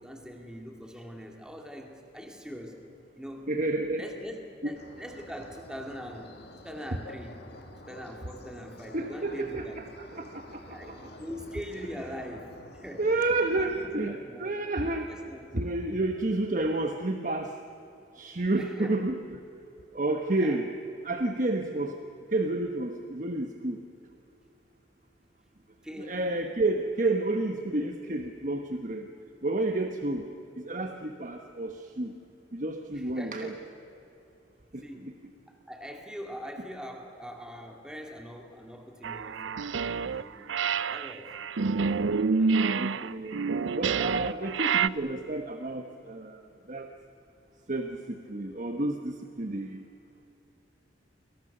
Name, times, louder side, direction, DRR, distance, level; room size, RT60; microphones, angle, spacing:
voice 1, 0.0-2.8 3.1-3.5 4.0-4.4 4.6-6.4 6.6-7.4 7.8-9.8 10.7-13.1 13.5-14.5 15.1-15.5 18.5-19.0 20.3-20.6 25.8-26.2 32.9-33.6 34.8-39.6 39.9-41.5 42.4-42.9, equal, 5° right, 2 dB, 2.4 m, -42 dB
voice 2, 3.5-4.0 4.6-4.7 8.9-11.0 13.0-15.1 15.5-17.6 18.1-19.2 19.9-20.7 21.0-22.0 22.3-23.8 26.1-29.1 29.4-30.3 30.6-32.1 32.5-33.5 34.7-34.8 42.7-43.4 43.7-46.4 46.7-46.9 47.7-49.8, right 2 dB, 40° right, 5 dB, 1.1 m, -30 dB
sound 1, 4.8-13.9, left 1 dB, 55° left, 2.3 m, -49 dB
sound 2, 39.0-40.2 40.5-44.9, right 5 dB, 80° right, 0.6 m, -28 dB
29.5 x 23.0 x 6.7 m, 3.0 s
head